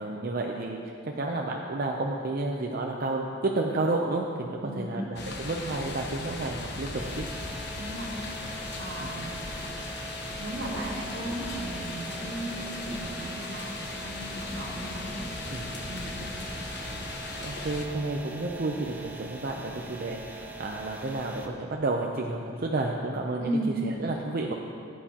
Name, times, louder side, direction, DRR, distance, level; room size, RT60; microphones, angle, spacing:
voice 1, 0.0-7.3 9.0-9.1 15.5-15.7 17.4-23.5 23.8-24.5, right 2 dB, 50° right, 0 dB, 0.6 m, -31 dB
voice 2, 4.6-5.0 7.8-9.3 10.4-15.2 15.9-16.2 23.4-23.7, right 1 dB, 80° right, -3 dB, 2.1 m, -36 dB
sound 1, 5.2-17.9, left 2 dB, 60° left, 1.1 m, -38 dB
sound 2, 7.0-21.5, right 2 dB, 10° right, 0.7 m, -43 dB
15.5 x 9.2 x 2.9 m, 2.5 s
head